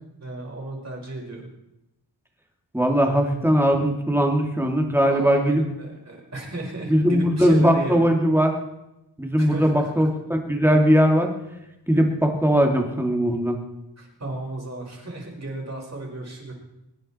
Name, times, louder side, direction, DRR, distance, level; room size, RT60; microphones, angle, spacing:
voice 1, 0.0-1.4 3.1-3.3 5.1-8.0 9.4-10.0 14.0-16.5, right 2 dB, 35° right, -1 dB, 5.5 m, -34 dB
voice 2, 2.7-5.6 6.9-8.6 9.2-11.3 11.9-13.6, equal, 5° right, 2 dB, 2.6 m, -20 dB
23.5 x 10.0 x 4.4 m, 0.90 s
wide cardioid pair, 80°, 43 cm